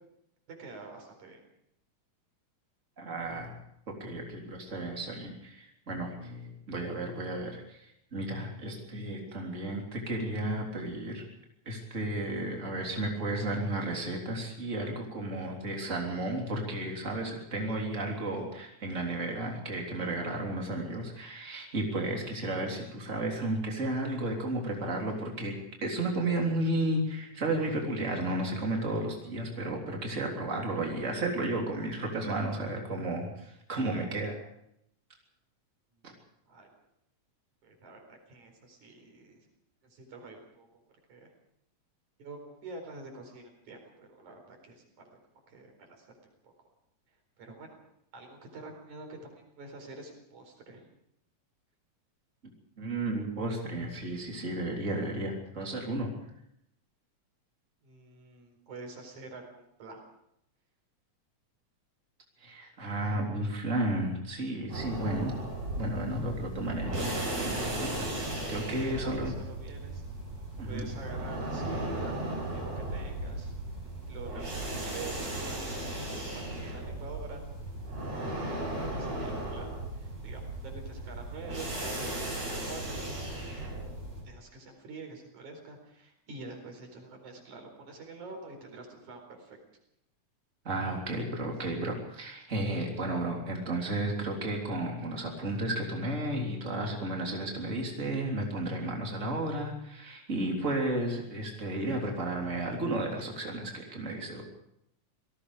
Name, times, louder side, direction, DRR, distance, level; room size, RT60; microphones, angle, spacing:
voice 1, 0.5-1.4 36.5-36.7 37.6-39.5 39.9-40.7 41.1-41.3 42.2-45.1 45.5-46.2 46.4-46.5 47.4-47.8 48.1-49.2 49.6-50.9 57.8-60.0 68.9-70.0 70.6-73.5 74.1-77.4 78.5-81.7 82.0-83.0 84.2-89.6, right 3 dB, 90° right, 4 dB, 5.7 m, -47 dB
voice 2, 3.0-3.6 3.9-7.8 8.1-11.2 11.7-25.5 25.8-34.4 36.0-36.1 52.8-56.1 62.4-65.4 65.8-69.3 70.6-70.9 90.6-104.4, right 1 dB, 25° right, 0 dB, 3.7 m, -33 dB
sound 1, 64.7-84.2, right 1 dB, 60° right, 8.8 m, -36 dB
27.5 x 18.5 x 5.0 m, 0.77 s
omnidirectional pair, 3.3 m